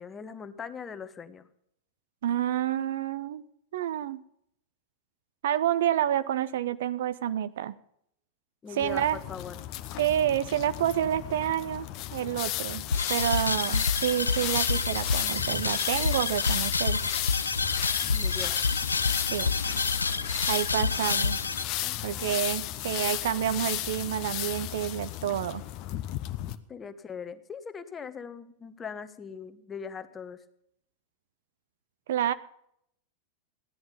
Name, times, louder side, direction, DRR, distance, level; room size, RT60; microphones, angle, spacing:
voice 1, 0.0-1.5 8.6-9.6 18.1-18.6 21.8-22.4 26.7-30.4, left 6 dB, 20° left, 11 dB, 1.1 m, -41 dB
voice 2, 2.2-3.4 3.7-4.2 5.4-7.8 8.7-9.2 10.0-17.0 19.3-19.5 20.5-21.4 22.0-25.6 32.1-32.3, right 11 dB, 60° right, 14 dB, 0.6 m, -29 dB
sound 1, 8.8-26.6, left 14 dB, 40° left, 0.8 m, -34 dB
sound 2, 12.9-21.6, left 4 dB, 80° left, 0.4 m, -28 dB
15.5 x 10.5 x 5.5 m, 0.72 s
figure-of-eight pair, 90°, 0 cm